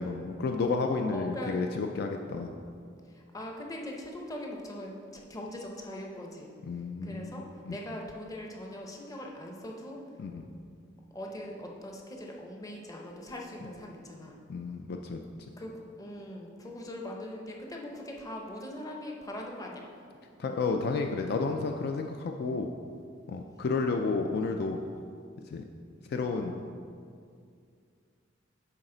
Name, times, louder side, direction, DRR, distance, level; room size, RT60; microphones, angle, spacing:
voice 1, 0.0-2.5 6.6-7.8 10.2-10.5 14.5-15.2 20.4-22.7 23.3-24.8 25.5-25.6 26.1-26.6, left 4 dB, 55° left, 4 dB, 0.3 m, -31 dB
voice 2, 1.1-1.6 3.1-6.5 7.0-10.0 11.1-14.4 15.6-19.8, left 1 dB, 20° left, 0 dB, 0.7 m, -41 dB
10.0 x 4.0 x 3.8 m, 2.3 s
head